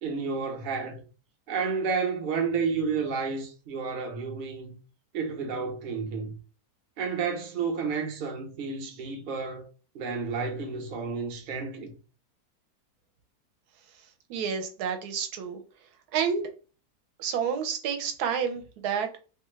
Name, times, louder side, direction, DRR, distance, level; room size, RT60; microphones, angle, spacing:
voice 1, 0.0-1.0 1.5-4.7 5.1-6.3 7.0-9.6 9.9-12.0, right 5 dB, 55° right, 0.5 m, -31 dB
voice 2, 14.3-15.6 16.1-16.5 17.2-19.2, right 7 dB, 75° right, 1.1 m, -29 dB
2.8 x 2.3 x 3.0 m
omnidirectional pair, 1.7 m